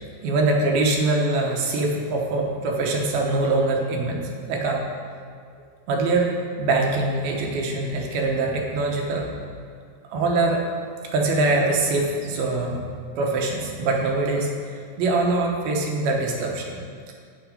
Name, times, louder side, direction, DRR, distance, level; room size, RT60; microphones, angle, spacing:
voice 1, 0.2-4.2 4.5-4.9 5.9-6.3 6.6-9.3 10.1-10.6 11.1-12.8 13.2-14.5 15.0-16.7, right 2 dB, 80° right, 0 dB, 3.0 m, -23 dB
8.7 x 7.9 x 5.1 m, 2.3 s
omnidirectional pair, 4.3 m